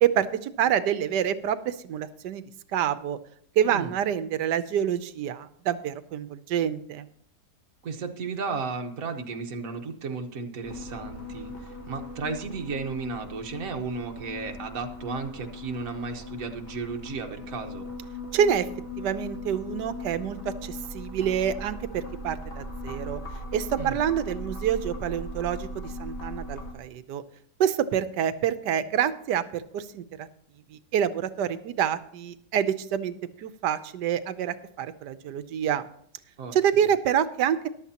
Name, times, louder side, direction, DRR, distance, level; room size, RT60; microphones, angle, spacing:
voice 1, 0.0-2.4 2.7-3.2 3.6-7.1 18.3-18.7 19.0-23.2 23.5-27.2 27.6-30.3 30.7-35.9 36.5-37.7, right 9 dB, 90° right, 12 dB, 1.3 m, -27 dB
voice 2, 7.8-17.9 23.8-24.0 36.4-36.9, right 4 dB, 55° right, 4 dB, 1.5 m, -34 dB
sound 1, 10.6-26.7, left 1 dB, 55° left, 2.4 m, -39 dB
14.0 x 11.5 x 2.9 m, 0.65 s
omnidirectional pair, 1.8 m